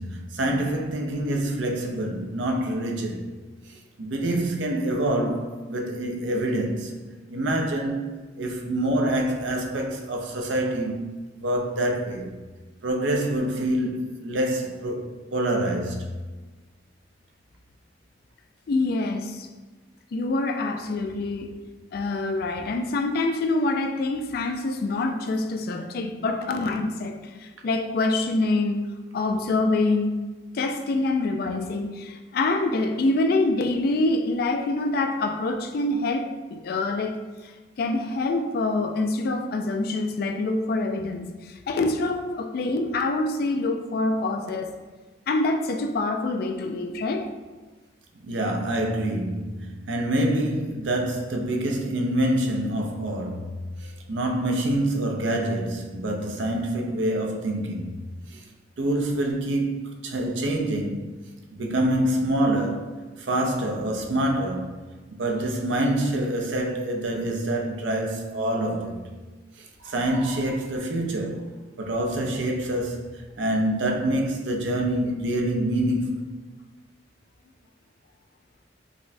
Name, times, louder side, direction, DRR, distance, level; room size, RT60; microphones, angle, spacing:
voice 1, 0.0-3.3 3.7-6.9 7.3-11.1 11.4-12.4 12.8-16.1 48.2-57.9 58.3-58.4 58.8-61.1 61.5-62.9 63.2-64.7 65.1-69.1 69.6-71.5 71.8-76.3, right 1 dB, 90° right, 0.5 m, -26 dB
voice 2, 18.7-19.5 20.1-21.6 21.9-28.8 29.1-30.1 30.5-37.2 37.4-37.5 37.8-44.7 45.3-47.3, left 2 dB, 55° left, 0.3 m, -25 dB
4.9 x 2.1 x 2.6 m
head